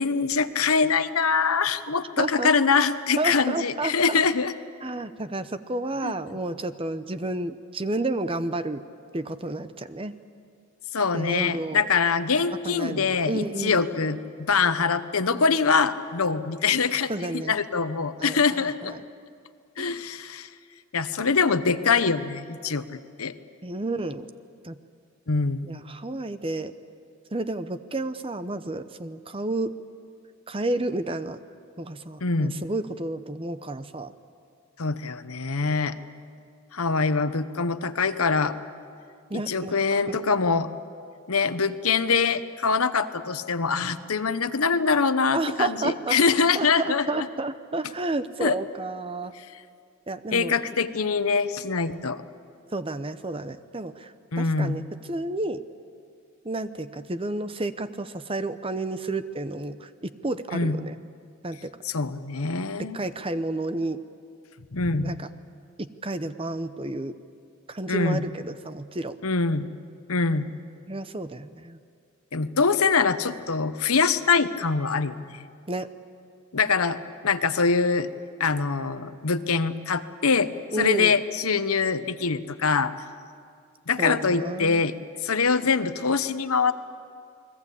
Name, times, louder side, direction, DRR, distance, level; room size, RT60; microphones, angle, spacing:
voice 1, 0.0-4.5 6.0-6.1 10.9-18.9 19.8-20.5 20.9-22.8 23.2-23.3 25.3-25.7 32.2-32.6 34.8-36.0 36.7-38.6 39.3-40.7 41.3-47.3 48.4-48.6 49.4-49.5 50.3-52.2 54.3-54.9 60.5-60.8 61.8-63.0 64.7-65.1 67.9-68.2 69.2-69.7 70.1-70.5 72.3-75.5 76.5-77.0 77.2-78.1 78.4-80.5 80.8-82.9 83.9-84.9 85.2-86.7, left 5 dB, 80° left, 12 dB, 1.0 m, -24 dB
voice 2, 2.2-2.5 3.2-4.2 4.8-8.8 9.1-10.1 11.1-11.9 12.6-13.9 17.1-17.5 18.2-19.0 19.8-20.0 23.6-24.3 24.6-24.7 25.7-26.7 27.3-29.7 30.5-31.4 31.8-34.1 39.3-40.2 45.3-46.2 46.5-49.3 50.1-50.5 52.7-54.8 55.1-55.6 56.4-61.0 61.4-61.7 62.8-64.0 65.0-65.3 65.8-67.1 67.7-69.2 70.9-71.8 75.7-75.9 80.7-81.1 84.0-84.8, right 2 dB, 25° right, 11 dB, 0.8 m, -31 dB
30.0 x 21.0 x 8.5 m, 2.3 s
head